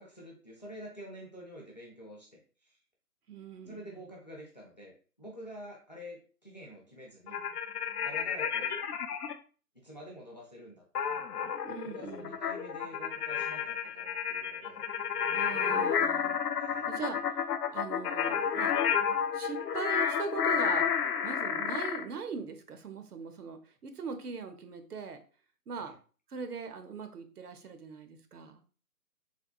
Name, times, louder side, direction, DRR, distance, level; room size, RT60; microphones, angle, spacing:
voice 1, 0.0-2.4 3.6-7.4 8.0-8.8 9.8-11.2 11.8-14.8 16.6-16.9 25.8-25.9, equal, 30° left, -2 dB, 0.5 m, -48 dB
voice 2, 3.3-4.0 11.6-12.4 15.3-16.4 16.8-17.4 17.7-18.8 19.3-20.9 21.2-25.2 25.7-25.9 26.3-28.6, right 5 dB, 75° right, 7 dB, 0.7 m, -40 dB
sound 1, 7.3-9.3 10.9-22.0, left 7 dB, 80° left, 0.5 m, -31 dB
3.4 x 2.8 x 2.3 m, 0.38 s
figure-of-eight pair, 155°, 47 cm